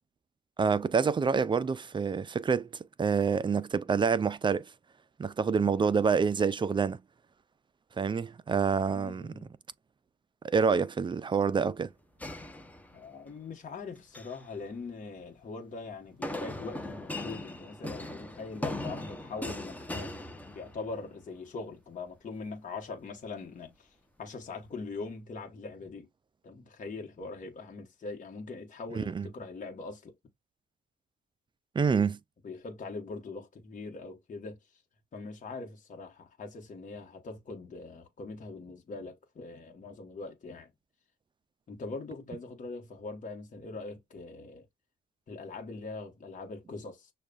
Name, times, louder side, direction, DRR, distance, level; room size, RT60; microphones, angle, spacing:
voice 1, 0.6-2.7 3.0-4.7 5.2-7.0 8.0-9.3 10.4-11.9 28.9-29.3 31.8-32.2, right 5 dB, 25° right, 0.3 m, -27 dB
voice 2, 8.9-9.5 12.9-20.2 20.5-23.9 24.2-26.1 26.4-30.1 32.4-34.6 35.1-40.7 41.7-44.6 45.3-47.1, left 3 dB, 40° left, 1.1 m, -42 dB
sound 1, 12.2-13.3 14.0-14.5 16.2-21.1, left 1 dB, 10° left, 0.7 m, -39 dB
6.3 x 2.3 x 2.3 m
cardioid pair, 90°, 20 cm